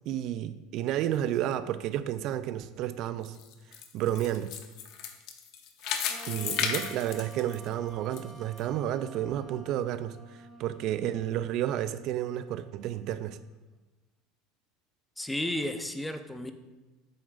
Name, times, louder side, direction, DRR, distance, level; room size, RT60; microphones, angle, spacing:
voice 1, 0.1-3.4 3.9-4.5 5.8-13.4, right 12 dB, 55° right, 12 dB, 0.3 m, -31 dB
sound 1, 3.2-8.2 8.6-8.7 9.3-9.4, left 7 dB, 60° left, 0.8 m, -34 dB
Wind instrument woodwind instrument, 6.1-13.5, right 3 dB, 15° right, 0.9 m, -50 dB
voice 2, 15.2-16.5, left 1 dB, 5° left, 8 dB, 0.6 m, -33 dB
7.8 x 7.2 x 2.4 m, 1.2 s
supercardioid pair, 115°, 0 cm